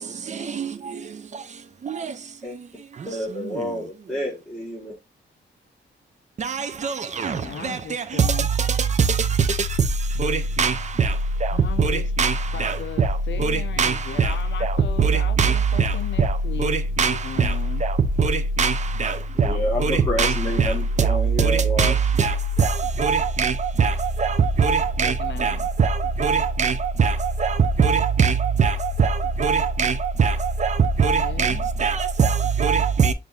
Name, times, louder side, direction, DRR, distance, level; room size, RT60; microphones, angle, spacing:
voice 1, 3.0-4.9 19.3-21.9, equal, 5° left, 1.3 m, -29 dB
voice 2, 6.4-6.9 7.2-7.4 7.6-8.3 10.2-11.1 11.8-11.9 12.2-12.3 12.6-13.1 13.4-14.3 15.0-15.1 15.4-15.9 16.2-16.3 16.6-17.5 18.2-18.7 19.0-19.5 19.8-20.7 21.0-21.1 21.4-22.7 23.0-23.5 23.8-23.9 24.2-25.1 25.4-25.9 26.2-26.7 27.0-27.1 27.4-28.3 28.6-28.7 29.0-29.1 29.4-29.9 30.2-30.3 30.6-32.3 32.6-33.1, right 5 dB, 35° right, 0.5 m, -21 dB
voice 3, 7.3-8.5 11.5-12.1 12.5-16.8 17.1-17.8 25.0-25.8 31.2-31.7, left 8 dB, 70° left, 0.7 m, -37 dB
6.8 x 2.6 x 2.4 m
wide cardioid pair, 135°, 20 cm